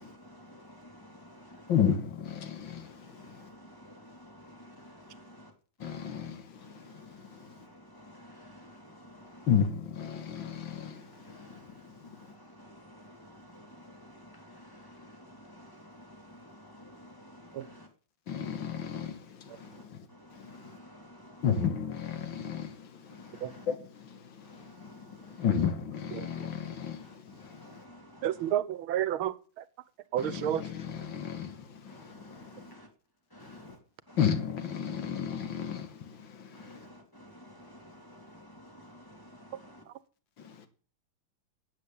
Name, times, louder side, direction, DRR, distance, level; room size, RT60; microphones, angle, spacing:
voice 1, 0.0-1.7 3.1-5.5 7.9-9.5 11.2-11.6 12.2-12.3 12.6-17.9 20.3-21.4 23.3-23.6 24.8-25.0 27.6-28.3 31.9-32.9 33.3-33.7 34.1-34.2 36.5-39.8, equal, 10° left, 3.0 m, -52 dB
voice 2, 1.7-3.5 5.8-7.6 9.5-12.3 18.3-20.8 21.4-27.8 30.2-32.7 33.4-33.8 34.2-36.9 40.4-40.7, left 8 dB, 70° left, 2.2 m, -34 dB
voice 3, 28.2-29.3 30.1-30.6, right 11 dB, 90° right, 1.7 m, -30 dB
12.5 x 8.6 x 8.6 m
omnidirectional pair, 2.2 m